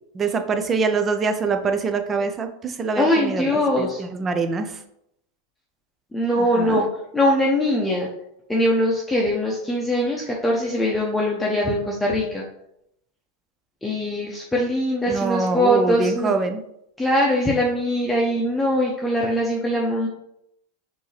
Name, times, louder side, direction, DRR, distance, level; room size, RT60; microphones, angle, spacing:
voice 1, 0.1-4.8 6.4-6.8 15.1-16.6, right 4 dB, 25° right, 7 dB, 0.6 m, -24 dB
voice 2, 3.0-4.0 6.1-6.9 7.1-8.1 8.5-12.4 13.8-16.3 17.0-20.1, left 1 dB, 5° left, -4 dB, 0.8 m, -22 dB
5.2 x 2.8 x 3.3 m, 0.77 s
hypercardioid pair, 100°, 0 cm